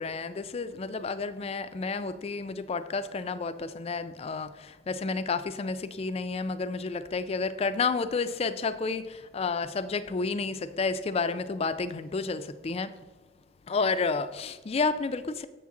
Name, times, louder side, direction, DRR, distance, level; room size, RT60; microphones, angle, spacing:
voice 1, 0.0-12.9 13.7-15.5, left 4 dB, 35° left, 0.4 m, -31 dB
7.2 x 6.7 x 3.7 m
head